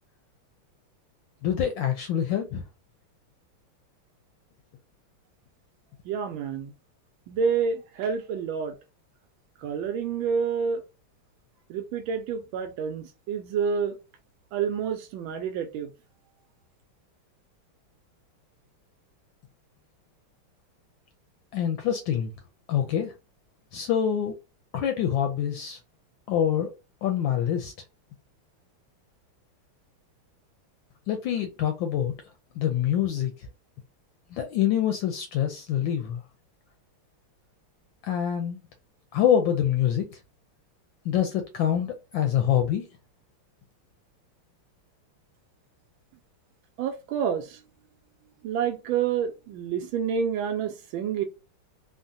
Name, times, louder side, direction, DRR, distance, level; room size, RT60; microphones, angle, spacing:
voice 1, 1.4-2.6 21.5-22.3 22.7-23.1 23.7-24.3 24.7-25.8 26.3-26.7 27.0-27.7 31.1-32.1 32.6-33.3 34.3-36.2 38.0-38.6 39.1-40.2 41.0-42.9, left 9 dB, 75° left, 1.2 m, -25 dB
voice 2, 6.0-6.7 7.3-8.8 9.6-10.8 11.7-14.0 14.5-15.9 46.8-47.6 48.4-51.2, right 7 dB, 75° right, 1.3 m, -28 dB
3.8 x 2.1 x 2.6 m
omnidirectional pair, 2.3 m